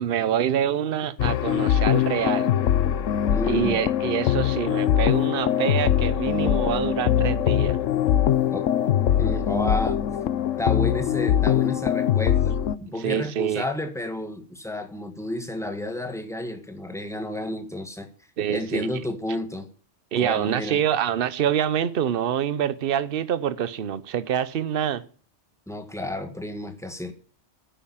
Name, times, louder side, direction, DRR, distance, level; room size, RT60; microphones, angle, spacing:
voice 1, 0.0-2.5 3.5-7.8 13.0-13.6 18.4-18.9 20.1-25.0, right 9 dB, 55° right, 0.9 m, -26 dB
sound 1, 1.2-12.8, left 10 dB, 80° left, 1.1 m, -22 dB
voice 2, 3.3-3.8 8.5-8.7 9.2-10.2 10.6-18.1 18.5-19.7 20.2-20.8 25.7-27.1, left 1 dB, ahead, 1.5 m, -31 dB
10.5 x 9.0 x 7.3 m
omnidirectional pair, 1.3 m